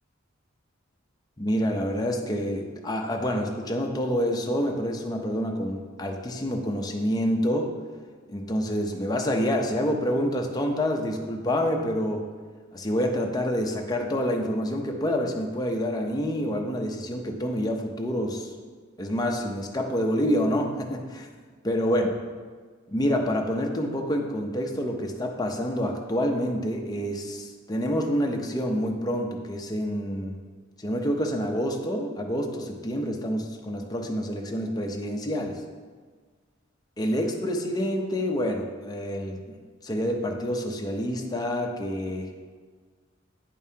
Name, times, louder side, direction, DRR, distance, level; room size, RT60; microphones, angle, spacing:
voice 1, 1.4-7.7 8.3-12.2 12.7-18.5 19.0-21.3 21.6-22.1 22.9-30.4 30.8-35.6 37.0-39.4 39.8-42.3, equal, 20° left, 2 dB, 0.7 m, -27 dB
9.2 x 5.4 x 2.8 m, 1.5 s
head